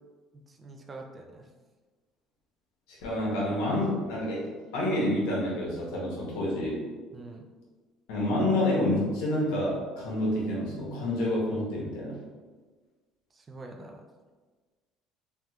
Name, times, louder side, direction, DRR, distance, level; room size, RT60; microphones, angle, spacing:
voice 1, 0.3-1.5 7.1-7.5 13.3-14.0, right 2 dB, 30° right, 3 dB, 0.4 m, -45 dB
voice 2, 3.0-4.5 4.7-6.8 8.1-12.1, left 1 dB, 90° left, -5 dB, 1.1 m, -28 dB
3.3 x 2.3 x 2.9 m, 1.4 s
cardioid pair, 110°, 0 cm